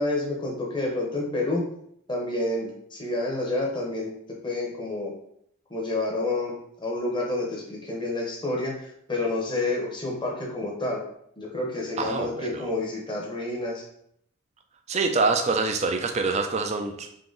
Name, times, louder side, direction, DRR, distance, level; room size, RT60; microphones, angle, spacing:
voice 1, 0.0-1.6 2.1-4.1 4.4-5.1 5.7-11.0 11.4-13.8, left 2 dB, 20° left, -2 dB, 0.9 m, -29 dB
voice 2, 12.0-12.7 14.9-17.1, right 3 dB, 30° right, 5 dB, 0.4 m, -25 dB
3.8 x 2.8 x 3.9 m, 0.70 s
head